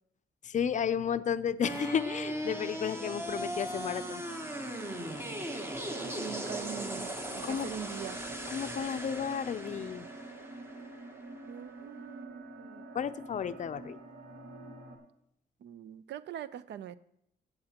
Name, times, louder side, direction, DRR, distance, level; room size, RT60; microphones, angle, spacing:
voice 1, 0.4-4.2 7.4-7.7 8.5-10.1 12.9-14.0, left 8 dB, 45° left, 12 dB, 0.5 m, -33 dB
sound 1, 1.6-11.7, equal, 15° right, 0.9 m, -39 dB
Guitar, 1.7-9.3 9.6-9.7 11.7-11.8, left 2 dB, 10° left, 0.7 m, -56 dB
sound 2, 2.3-15.0, right 3 dB, 70° right, 1.9 m, -47 dB
voice 2, 5.9-8.2 11.5-12.9 15.6-17.0, right 9 dB, 90° right, 16 dB, 0.5 m, -43 dB
15.5 x 8.0 x 2.9 m, 0.74 s
wide cardioid pair, 145°, 17 cm